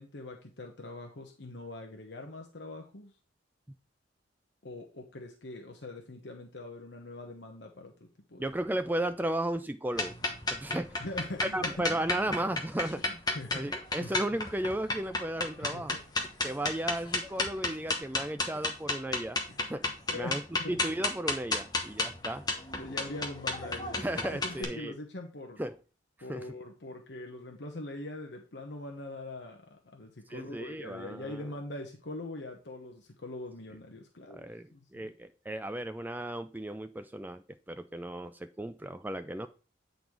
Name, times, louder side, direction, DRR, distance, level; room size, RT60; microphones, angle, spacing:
voice 1, 0.0-3.1 4.6-8.4 11.0-12.0 12.8-12.9 13.3-14.1 15.6-15.8 19.5-19.6 20.1-20.8 22.8-25.6 26.2-34.5 34.7-35.1, left 2 dB, 60° left, 2 dB, 1.0 m, -42 dB
voice 2, 8.4-10.2 10.5-11.0 11.4-13.2 13.5-16.0 16.4-19.4 19.7-20.4 20.7-22.4 24.0-24.9 25.6-25.8 26.3-26.5 30.3-31.5 34.3-39.5, right 1 dB, 10° right, 10 dB, 0.4 m, -35 dB
sound 1, 9.9-24.6, left 2 dB, 20° left, 1.1 m, -33 dB
8.7 x 4.0 x 4.7 m, 0.34 s
head